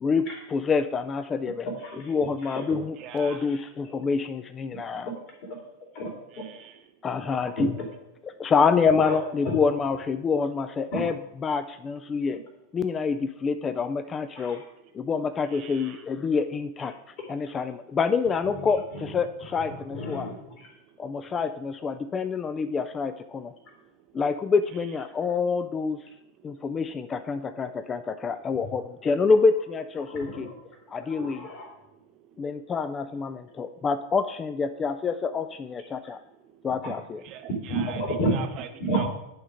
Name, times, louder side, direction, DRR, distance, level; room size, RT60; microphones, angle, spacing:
voice 1, 0.0-1.7 2.1-5.1 7.0-7.7 8.4-11.1 11.4-12.4 12.7-14.6 14.9-16.9 17.3-20.3 21.0-23.5 24.1-26.0 26.4-30.5 30.9-31.5 32.4-36.2 36.6-37.2, left 5 dB, 20° left, 11 dB, 0.3 m, -27 dB
voice 2, 1.7-2.1 2.5-2.6 4.7-5.1 5.9-6.4 7.6-7.7 9.0-9.2 9.4-9.5 10.9-11.0 14.4-14.6 18.9-19.2 19.6-20.7 30.1-30.5 31.0-31.7 36.8-36.9 37.7-38.4 38.8-39.1, right 1 dB, 40° left, -1 dB, 2.8 m, -31 dB
voice 3, 3.0-3.5 6.3-6.8 15.4-16.0 37.2-39.1, right 10 dB, 40° right, 6 dB, 0.5 m, -42 dB
10.5 x 3.7 x 4.9 m, 0.85 s
figure-of-eight pair, 90°, 0 cm